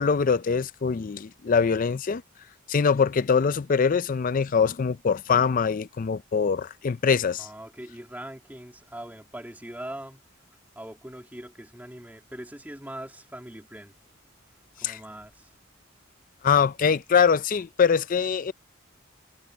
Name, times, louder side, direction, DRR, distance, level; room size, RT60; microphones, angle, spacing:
voice 1, 0.0-2.2 2.7-7.5 14.8-15.0 16.4-18.5, left 6 dB, 40° left, 0.4 m, -23 dB
voice 2, 7.4-10.2 10.7-13.9 14.8-15.5, right 1 dB, 10° right, 2.6 m, -41 dB
head